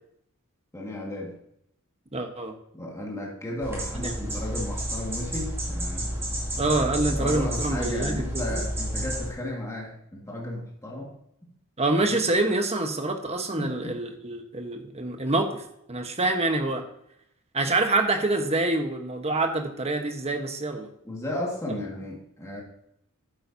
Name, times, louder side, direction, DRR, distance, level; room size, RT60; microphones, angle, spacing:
voice 1, 0.7-1.4 2.7-6.1 7.1-11.1 13.6-14.0 21.0-22.6, left 1 dB, 15° left, -3 dB, 1.9 m, -34 dB
voice 2, 2.1-2.5 4.0-4.4 6.6-8.7 11.8-15.6 15.9-16.9 17.5-20.9, right 2 dB, 30° right, 5 dB, 1.2 m, -26 dB
sound 1, 3.6-9.3, right 1 dB, 10° right, 2.7 m, -31 dB
11.0 x 9.1 x 2.8 m, 0.75 s
head